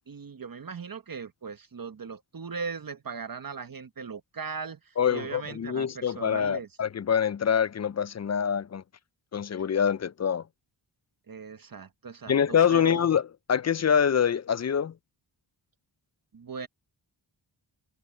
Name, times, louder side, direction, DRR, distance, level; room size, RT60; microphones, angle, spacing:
voice 1, 0.1-6.7 11.3-13.0 16.3-16.7, right 5 dB, 45° right, 1.3 m, -39 dB
voice 2, 5.0-8.8 9.3-10.4 12.3-13.2 13.5-14.9, left 8 dB, 40° left, 0.4 m, -25 dB
wide cardioid pair, 85°, 47 cm